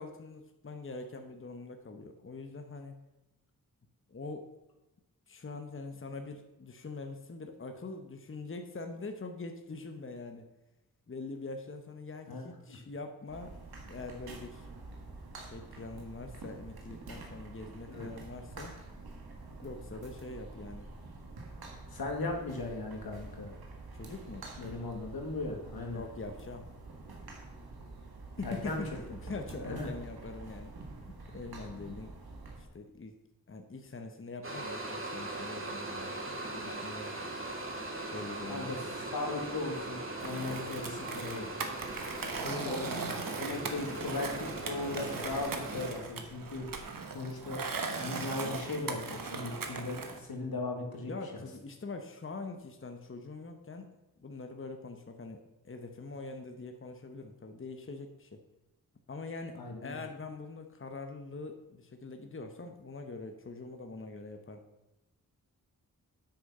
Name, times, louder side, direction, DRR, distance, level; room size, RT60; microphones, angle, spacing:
voice 1, 0.0-2.9 4.1-4.5 5.3-10.5 11.1-14.7 15.4-18.7 19.6-20.9 23.9-24.5 25.9-26.7 28.4-30.7 31.3-32.1 32.5-33.1 33.5-37.2 38.1-39.0 42.2-43.0 51.1-58.4 59.1-64.6, left 3 dB, 35° left, 5 dB, 1.0 m, -43 dB
sound 1, 13.3-32.7, right 3 dB, 90° right, 1.7 m, -47 dB
voice 2, 21.9-23.5 24.6-26.0 28.4-29.0 29.6-29.9 38.5-38.8 39.1-41.6 42.6-42.8 43.4-46.7 47.1-47.6 47.9-51.4 59.5-60.0, left 2 dB, 80° left, 2 dB, 1.9 m, -37 dB
sound 2, 34.4-45.9, right 2 dB, 35° right, 2.0 m, -40 dB
Skateboard, 40.2-50.2, right 4 dB, 65° right, 1.3 m, -39 dB
8.6 x 6.3 x 5.4 m, 1.0 s
cardioid pair, 50°, 36 cm